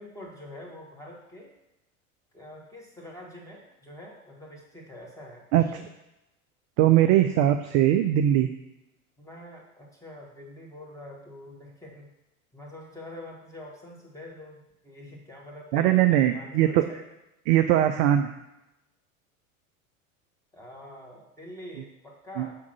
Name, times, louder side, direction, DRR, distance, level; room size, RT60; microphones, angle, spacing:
voice 1, 0.0-1.5 2.3-5.5 5.7-5.8 9.2-12.1 12.5-17.0 20.5-22.6, left 1 dB, 5° left, -2 dB, 1.9 m, -45 dB
voice 2, 6.8-8.5 15.7-16.9 17.5-18.4 22.4-22.5, right 12 dB, 35° right, 8 dB, 0.4 m, -21 dB
6.7 x 3.6 x 6.1 m, 0.92 s
figure-of-eight pair, 85°, 43 cm